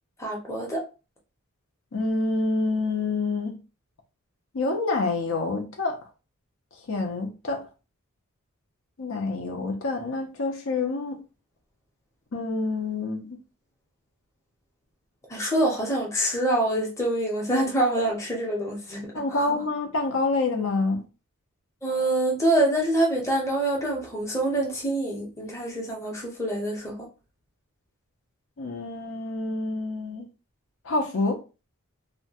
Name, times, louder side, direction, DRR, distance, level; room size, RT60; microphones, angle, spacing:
voice 1, 0.2-0.8 15.3-19.6 21.8-27.1, right 1 dB, 15° left, 0.7 m, -26 dB
voice 2, 1.9-3.6 4.5-6.0 6.9-7.6 9.0-11.2 12.3-13.4 19.1-21.0 28.6-30.3 30.8-31.4, left 3 dB, 60° left, 0.6 m, -27 dB
2.8 x 2.2 x 2.8 m
head